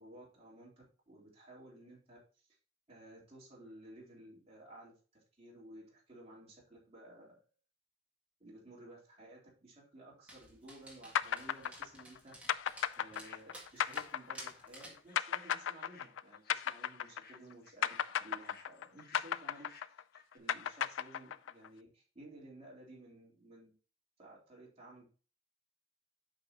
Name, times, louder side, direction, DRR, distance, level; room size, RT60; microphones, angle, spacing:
voice 1, 0.0-2.2 2.9-7.4 8.4-12.6 13.0-19.7 20.3-23.8 24.2-25.0, right 1 dB, 35° right, -6 dB, 3.6 m, -55 dB
Dog, 10.3-15.1, right 1 dB, 5° right, 1.8 m, -54 dB
sound 1, 11.1-17.5 17.8-21.7, left 9 dB, 85° left, 0.4 m, -35 dB
sound 2, 13.1-14.0 14.3-20.4, left 5 dB, 55° left, 1.3 m, -60 dB
8.6 x 5.9 x 2.9 m, 0.36 s
head